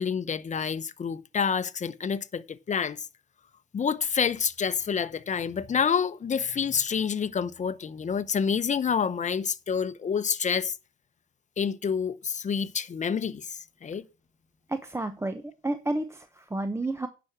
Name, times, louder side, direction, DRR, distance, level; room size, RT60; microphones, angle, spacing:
voice 1, 0.0-3.0 3.7-10.8 11.6-14.0, left 6 dB, 35° left, 0.9 m, -28 dB
voice 2, 14.7-17.1, right 2 dB, 15° right, 0.9 m, -31 dB
9.8 x 6.1 x 7.3 m
cardioid pair, 90°, 20 cm